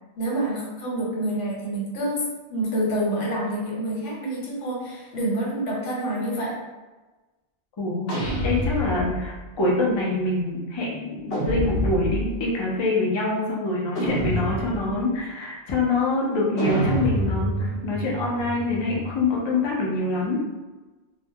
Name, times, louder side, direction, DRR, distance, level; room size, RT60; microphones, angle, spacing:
voice 1, 0.2-6.5, right 1 dB, 85° left, -4 dB, 1.1 m, -27 dB
voice 2, 7.8-8.1 8.4-20.4, left 2 dB, 45° left, -4 dB, 0.3 m, -25 dB
sound 1, 8.1-9.4 11.3-12.4 14.0-15.0 16.6-19.3, equal, 60° left, 0.8 m, -27 dB
2.2 x 2.1 x 2.7 m, 1.2 s
omnidirectional pair, 1.2 m